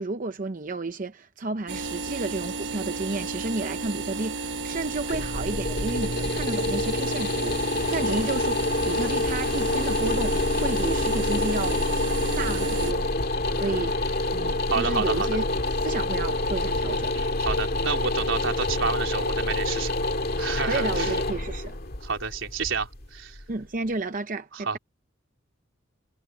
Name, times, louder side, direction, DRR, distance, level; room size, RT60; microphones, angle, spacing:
voice 1, 0.0-8.6 8.9-11.8 12.4-13.1 13.5-14.0 14.3-15.5 15.8-17.1 20.6-21.8 23.5-24.8, right 3 dB, 40° right, 0.7 m, -31 dB
sound 1, 1.7-12.9, right 3 dB, 70° right, 1.0 m, -33 dB
sound 2, 4.7-23.6, left 2 dB, 50° left, 2.2 m, -27 dB
voice 2, 13.5-15.3 17.1-19.9 20.4-21.1 22.0-23.4 24.5-24.8, right 5 dB, 85° right, 4.0 m, -30 dB
head